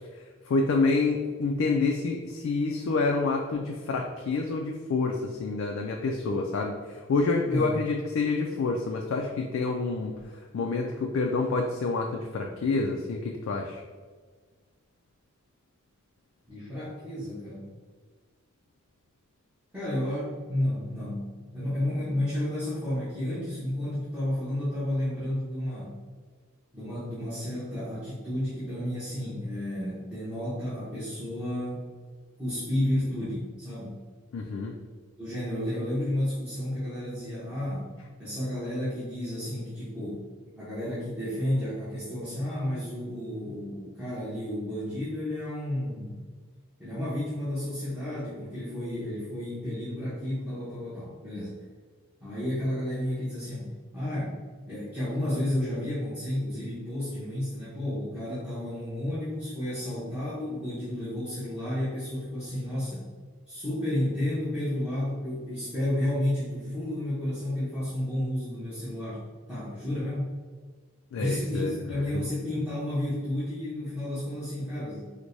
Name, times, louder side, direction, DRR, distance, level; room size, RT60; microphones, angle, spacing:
voice 1, 0.2-10.2 10.5-13.8 34.3-34.8 71.1-71.7, left 3 dB, 70° left, 1 dB, 0.3 m, -28 dB
voice 2, 16.5-17.6 19.7-25.9 26.7-31.9 32.4-34.0 35.2-37.9 38.2-40.2 40.4-46.2 46.8-51.6 52.2-54.4 54.7-63.1 63.5-69.2 69.5-70.4 71.2-75.1, left 1 dB, 5° right, -13 dB, 0.8 m, -31 dB
4.5 x 2.1 x 2.6 m, 1.5 s
head